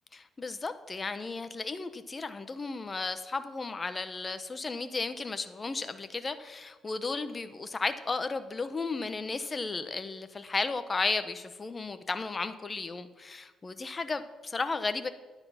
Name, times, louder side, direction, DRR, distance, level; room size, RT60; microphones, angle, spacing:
voice 1, 0.1-15.1, left 3 dB, 30° left, 10 dB, 1.1 m, -34 dB
12.0 x 9.6 x 5.9 m, 1.3 s
cardioid pair, 90°, 0 cm